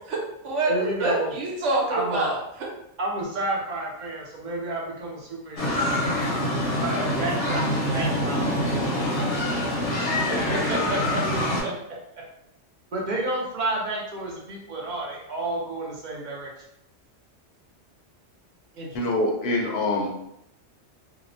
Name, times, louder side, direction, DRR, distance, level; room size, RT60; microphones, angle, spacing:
voice 1, 0.1-0.7 1.0-2.4 18.7-19.0, right 2 dB, 90° right, -2 dB, 1.0 m, -26 dB
voice 2, 0.7-1.3 1.9-2.3 3.0-6.0 6.6-9.6 10.2-12.2 12.9-16.5, right 2 dB, 55° right, -3 dB, 0.6 m, -31 dB
sound 1, 5.6-11.6, left 1 dB, 85° left, 1.1 m, -25 dB
voice 3, 18.9-20.1, left 2 dB, 65° left, -1 dB, 0.8 m, -24 dB
2.7 x 2.0 x 2.5 m, 0.79 s
omnidirectional pair, 1.2 m